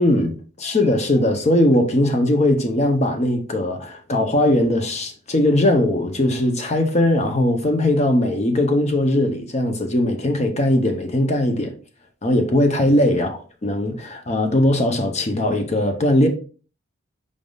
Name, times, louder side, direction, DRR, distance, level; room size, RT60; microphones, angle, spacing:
voice 1, 0.0-11.7 12.2-16.3, left 1 dB, 30° left, 0.6 m, -19 dB
5.1 x 3.5 x 2.3 m
head